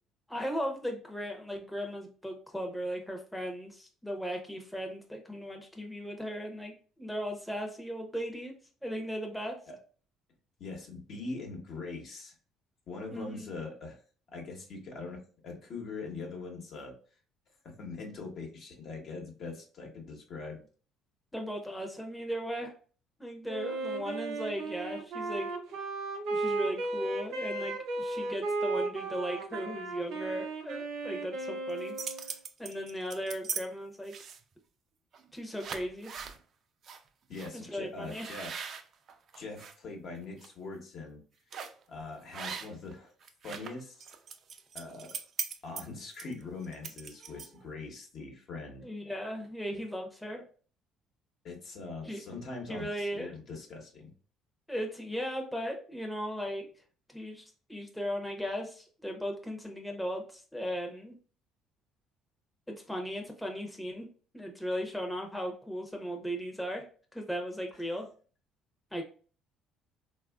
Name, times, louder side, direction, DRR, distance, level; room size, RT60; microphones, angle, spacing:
voice 1, 0.3-8.5 8.8-9.5 13.1-13.5 21.3-22.7 23.2-25.5 26.3-32.0 32.6-34.1 35.3-36.2 37.5-38.3 48.8-50.4 52.1-52.2 52.7-53.3 54.7-56.7 57.1-57.4 57.7-61.1 62.9-64.1 64.3-66.8 67.1-68.1 68.9-69.0, equal, 5° left, 2 dB, 0.7 m, -37 dB
voice 2, 10.6-12.3 12.9-14.0 14.3-16.9 17.6-20.6 37.3-38.6 39.3-41.2 41.9-43.1 43.4-44.0 44.7-45.1 45.6-48.9 49.7-49.8 51.4-54.1 67.7-67.8, left 3 dB, 60° left, 1 dB, 1.0 m, -42 dB
Wind instrument woodwind instrument, 23.5-32.3, right 3 dB, 80° right, 0.9 m, -35 dB
straps-surfing, 31.7-33.6 34.1-34.5 35.1-35.3 35.6-36.4 36.8-37.0 37.3-37.5 38.1-39.7 40.2-40.5 41.5-41.8 42.3-42.9 43.2-47.7, right 6 dB, 55° right, 0.4 m, -40 dB
3.3 x 2.3 x 2.3 m, 0.40 s
supercardioid pair, 80°, 0 cm